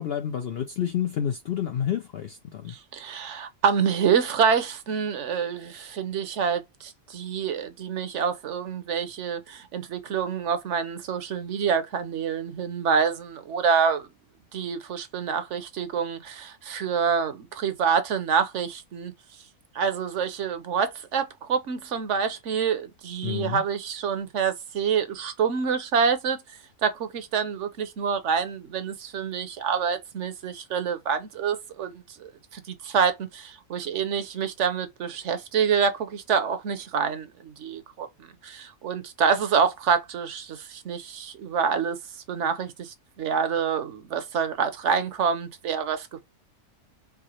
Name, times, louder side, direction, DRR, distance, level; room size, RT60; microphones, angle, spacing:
voice 1, 0.0-2.7 23.2-23.6, left 9 dB, 70° left, 0.6 m, -29 dB
voice 2, 2.7-14.1 14.5-19.1 19.7-26.4 26.8-42.0 42.3-46.2, right 6 dB, 60° right, 1.0 m, -27 dB
4.8 x 2.0 x 2.9 m
omnidirectional pair, 1.5 m